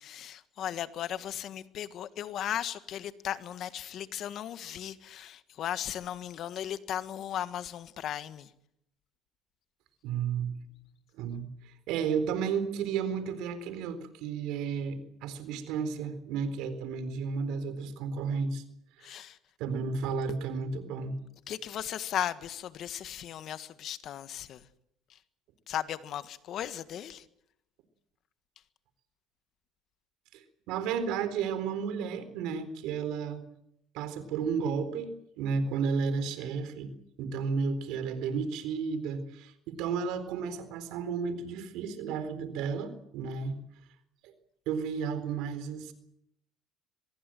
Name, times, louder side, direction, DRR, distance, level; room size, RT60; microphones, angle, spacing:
voice 1, 0.0-8.5 19.0-19.4 21.5-24.6 25.7-27.2, left 10 dB, 55° left, 12 dB, 1.6 m, -36 dB
voice 2, 10.0-10.5 11.1-18.6 19.0-19.1 19.6-21.2 30.3-33.4 33.9-36.9 37.2-43.6 44.2-44.3 44.7-45.9, right 6 dB, 75° right, 12 dB, 4.0 m, -33 dB
24.5 x 21.0 x 7.8 m, 0.77 s
cardioid pair, 105°, 0 cm